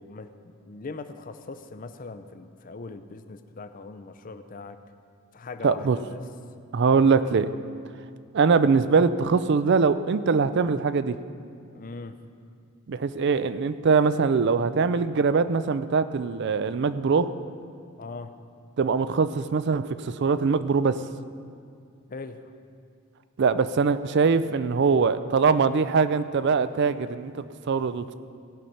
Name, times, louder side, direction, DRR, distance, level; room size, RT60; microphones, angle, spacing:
voice 1, 0.0-4.8 5.3-6.2 11.7-12.2 18.0-18.4 22.1-22.5, left 3 dB, 40° left, 10 dB, 0.5 m, -40 dB
voice 2, 5.6-6.0 6.7-7.5 8.3-11.2 12.9-17.3 18.8-21.0 23.4-28.1, right 5 dB, 50° right, 13 dB, 0.4 m, -22 dB
17.0 x 5.8 x 5.4 m, 2.3 s
head